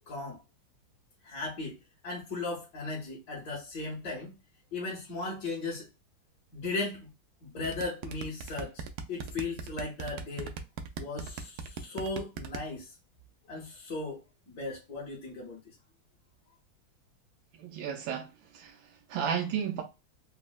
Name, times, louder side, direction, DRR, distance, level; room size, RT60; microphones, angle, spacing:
voice 1, 0.1-0.4 1.2-1.8 2.0-4.4 4.7-5.9 6.5-7.1 7.5-8.8 9.1-10.5 11.0-12.9 13.5-14.2 14.5-15.6, left 3 dB, 60° left, 1.5 m, -36 dB
sound 1, 7.6-12.6, right 6 dB, 75° right, 0.9 m, -38 dB
voice 2, 17.6-19.8, right 8 dB, 90° right, 1.4 m, -34 dB
4.1 x 2.1 x 2.2 m
omnidirectional pair, 2.0 m